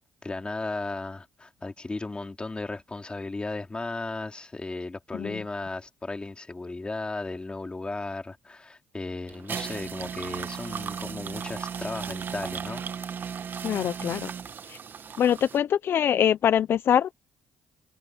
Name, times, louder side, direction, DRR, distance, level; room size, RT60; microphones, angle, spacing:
voice 1, 0.2-12.8, left 3 dB, 25° left, 4.1 m, -35 dB
sound 1, 9.3-15.6, right 7 dB, 50° right, 1.8 m, -36 dB
voice 2, 13.6-14.3 14.7-14.8 15.2-17.1, left 9 dB, 60° left, 0.8 m, -23 dB
supercardioid pair, 60°, 4 cm